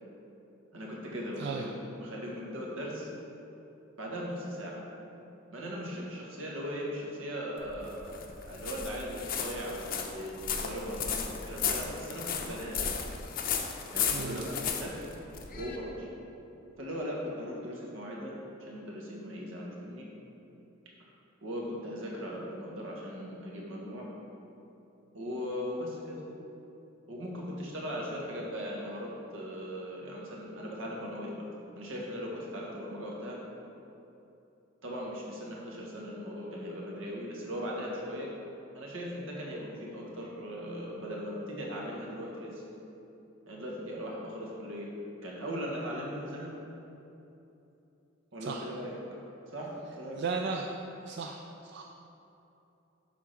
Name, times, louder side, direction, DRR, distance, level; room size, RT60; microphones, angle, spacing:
voice 1, 0.7-3.1 4.0-4.8 5.5-10.3 10.6-12.8 13.9-15.1 15.6-16.1 16.8-18.3 18.7-20.1 21.4-24.1 25.1-26.2 27.1-31.5 31.8-33.4 34.8-38.3 38.7-42.6 43.5-44.9 45.2-46.6 48.3-49.0 49.5-50.2, equal, 80° right, -3 dB, 1.5 m, -38 dB
sound 1, 7.6-15.8, left 7 dB, 45° left, 0.6 m, -35 dB
voice 2, 14.1-14.5 48.4-48.6 50.2-50.7 51.1-51.8, right 5 dB, 55° right, 1 dB, 0.4 m, -35 dB
8.4 x 3.6 x 5.8 m, 2.9 s
head